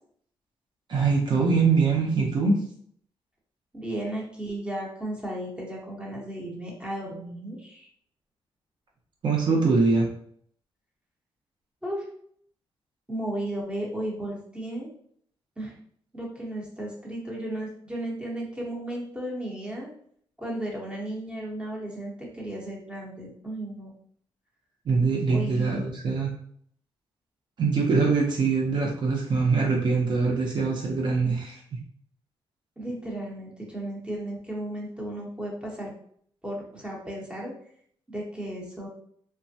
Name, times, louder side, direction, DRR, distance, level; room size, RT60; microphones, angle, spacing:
voice 1, 0.9-2.6 9.2-10.1 24.9-26.3 27.6-31.8, right 4 dB, 55° right, -1 dB, 0.6 m, -23 dB
voice 2, 3.7-7.9 11.8-12.0 13.1-14.9 15.6-15.8 16.1-19.9 20.4-23.9 25.3-25.9 32.8-35.9 36.4-37.5 38.1-38.9, right 1 dB, 10° right, -3 dB, 0.9 m, -34 dB
3.3 x 2.1 x 2.7 m, 0.63 s
cardioid pair, 120°, 9 cm